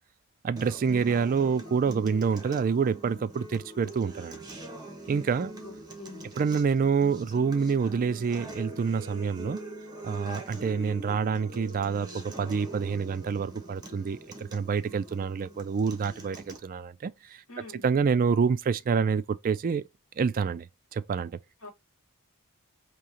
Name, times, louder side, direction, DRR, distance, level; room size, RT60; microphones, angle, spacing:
voice 1, 0.4-4.4 5.1-5.5 6.4-9.6 10.0-17.4 17.8-19.9 20.2-20.7 20.9-21.4, right 5 dB, 40° right, 0.3 m, -27 dB
Acoustic guitar, 0.6-16.6, right 1 dB, 20° right, 1.1 m, -43 dB
voice 2, 5.6-6.3 17.5-17.9 21.6-21.7, left 3 dB, 80° left, 1.6 m, -46 dB
5.1 x 2.8 x 2.9 m
head